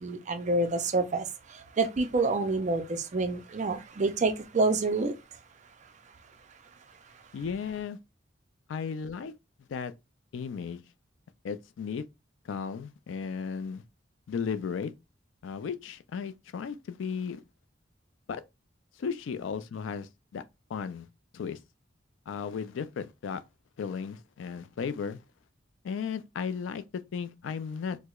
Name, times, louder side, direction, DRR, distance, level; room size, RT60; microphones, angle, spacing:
voice 1, 0.0-1.3 1.8-5.1, right 3 dB, 40° right, 0.5 m, -27 dB
voice 2, 7.3-8.0 8.7-9.3 9.7-9.9 10.3-10.8 11.4-12.0 12.5-13.8 14.3-14.9 15.4-17.4 18.3-18.4 19.0-20.4 20.7-21.1 21.3-21.6 22.3-23.4 23.8-25.2 25.8-28.0, left 6 dB, 85° left, 0.3 m, -35 dB
4.5 x 2.0 x 2.3 m
head